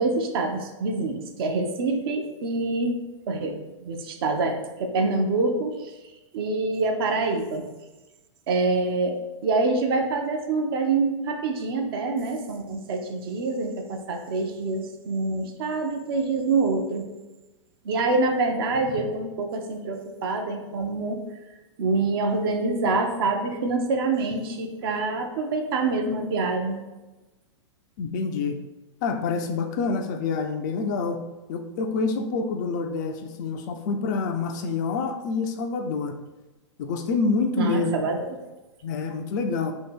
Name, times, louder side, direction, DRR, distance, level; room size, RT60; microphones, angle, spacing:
voice 1, 0.0-5.9 6.3-7.7 8.5-9.2 9.4-17.0 17.8-21.2 21.8-26.8 37.6-38.4, right 3 dB, 50° right, 4 dB, 0.6 m, -26 dB
voice 2, 28.0-28.6 29.0-31.2 31.5-36.2 36.8-37.9 38.8-39.7, left 4 dB, 35° left, 6 dB, 0.4 m, -27 dB
2.9 x 2.8 x 4.2 m, 1.1 s
figure-of-eight pair, 105°, 16 cm